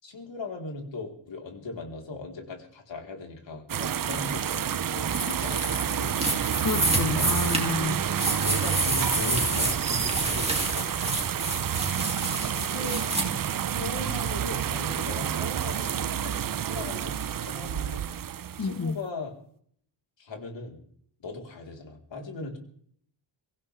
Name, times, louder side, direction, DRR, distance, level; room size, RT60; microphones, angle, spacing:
voice 1, 0.0-6.2 6.9-7.4 8.4-10.9 12.5-13.0 13.7-18.0 18.6-19.3 20.2-20.8 21.2-22.6, left 2 dB, 70° left, 1 dB, 4.4 m, -38 dB
sound 1, 3.7-18.9, right 9 dB, 45° right, 0.6 m, -29 dB
sound 2, 5.1-13.2, right 2 dB, 15° right, 3.0 m, -29 dB
voice 2, 6.6-8.0 18.6-19.0, left 4 dB, 45° left, 6 dB, 1.4 m, -30 dB
24.0 x 15.5 x 3.6 m, 0.63 s
wide cardioid pair, 170°, 47 cm